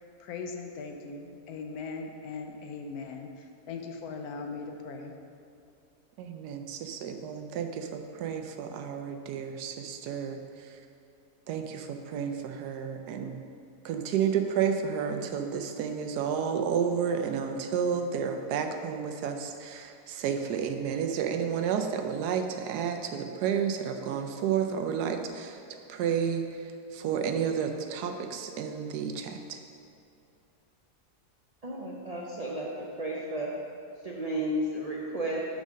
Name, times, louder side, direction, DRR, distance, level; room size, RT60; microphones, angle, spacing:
voice 1, 0.2-5.1, left 4 dB, 75° left, 4 dB, 1.1 m, -39 dB
voice 2, 6.2-10.4 11.5-13.4 13.8-25.6 25.9-26.4 26.9-29.6, right 7 dB, 85° right, 5 dB, 1.2 m, -31 dB
voice 3, 31.6-32.7 33.0-33.5 34.0-35.4, right 1 dB, 65° right, -3 dB, 0.3 m, -32 dB
5.4 x 5.3 x 6.1 m, 2.6 s
omnidirectional pair, 1.7 m